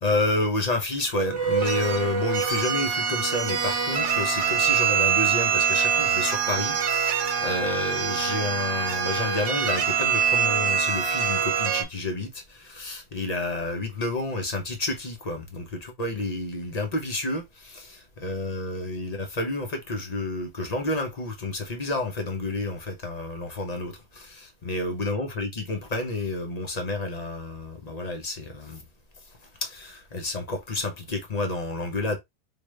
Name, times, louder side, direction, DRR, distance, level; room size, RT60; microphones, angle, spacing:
voice 1, 0.0-28.8 29.6-32.2, left 2 dB, 40° left, 0.8 m, -30 dB
sound 1, 1.2-11.8, right 7 dB, 85° right, 1.1 m, -24 dB
3.7 x 2.5 x 3.1 m
omnidirectional pair, 1.2 m